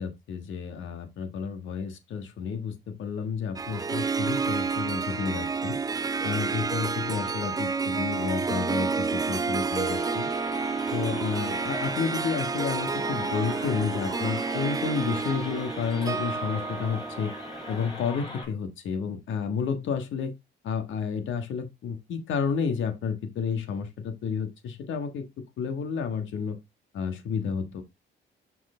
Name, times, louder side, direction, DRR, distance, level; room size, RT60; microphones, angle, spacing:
voice 1, 0.0-5.8 6.2-10.3 10.9-17.3 17.7-20.3 20.6-25.2 25.6-26.6 26.9-27.8, left 6 dB, 75° left, 1.5 m, -31 dB
Harp, 3.6-18.0, right 4 dB, 20° right, 0.4 m, -30 dB
sound 1, 9.7-18.5, left 2 dB, 30° left, 3.5 m, -41 dB
6.4 x 4.6 x 3.7 m
cardioid pair, 90°, 20 cm